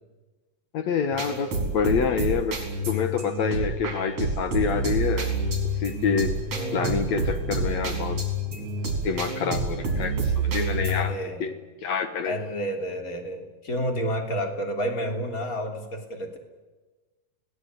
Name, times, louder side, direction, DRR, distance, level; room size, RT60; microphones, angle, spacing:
voice 1, 0.7-2.6 2.9-5.3 5.8-6.4 6.7-8.2 8.6-8.7 9.0-11.5 11.8-12.4, left 6 dB, 60° left, 9 dB, 2.0 m, -27 dB
sound 1, 1.1-11.1, right 2 dB, 40° right, 5.2 m, -28 dB
voice 2, 6.5-7.1 10.9-11.5 12.2-16.4, equal, 25° left, 4 dB, 3.1 m, -30 dB
29.5 x 18.5 x 9.6 m, 1.2 s
omnidirectional pair, 4.4 m